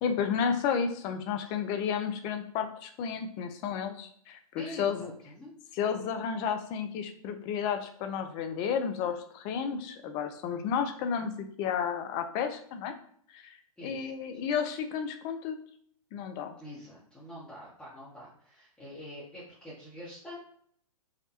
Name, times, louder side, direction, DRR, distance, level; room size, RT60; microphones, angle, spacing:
voice 1, 0.0-5.1 5.7-12.9 13.3-15.6 16.1-16.6, left 7 dB, 25° left, 7 dB, 0.4 m, -32 dB
voice 2, 4.6-5.7 13.8-14.1 16.6-20.4, left 1 dB, 5° left, -9 dB, 0.8 m, -46 dB
4.8 x 2.2 x 2.8 m, 0.63 s
hypercardioid pair, 125°, 19 cm